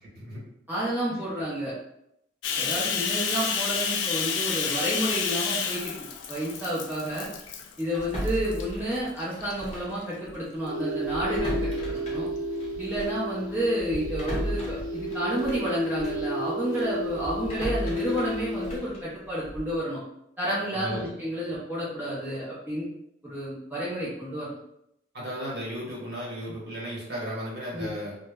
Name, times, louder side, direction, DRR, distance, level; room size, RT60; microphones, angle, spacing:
voice 1, 0.0-0.4 1.1-1.2 20.7-21.1 25.1-28.2, equal, 55° right, -6 dB, 1.1 m, -35 dB
voice 2, 0.7-1.7 2.6-5.9 6.3-7.3 7.8-12.3 12.8-20.0 20.4-22.9 23.2-24.5 27.7-27.9, right 1 dB, 10° right, -10 dB, 0.6 m, -30 dB
Bathtub (filling or washing), 2.4-7.8 8.2-8.6 9.2-10.0, left 6 dB, 80° left, 0.3 m, -30 dB
sound 1, 7.9-10.0 10.3-10.5 11.0-16.3 16.7-19.8, equal, 35° left, 0.6 m, -36 dB
sound 2, 10.6-18.8, equal, 85° right, 0.7 m, -32 dB
2.1 x 2.0 x 3.5 m, 0.80 s
head